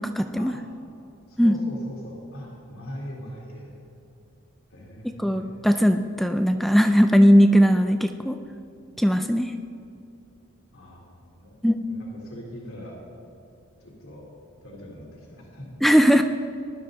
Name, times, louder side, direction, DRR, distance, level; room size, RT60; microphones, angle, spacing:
voice 1, 0.2-0.6 1.4-1.5 5.2-8.4 9.0-9.5 11.6-11.8 15.8-16.2, equal, ahead, 7 dB, 0.4 m, -18 dB
voice 2, 1.3-3.7 4.7-5.5 10.7-11.6 11.9-13.1 13.8-14.3 14.6-15.7, equal, 85° left, -3 dB, 3.3 m, -41 dB
19.5 x 12.0 x 4.1 m, 2.7 s
head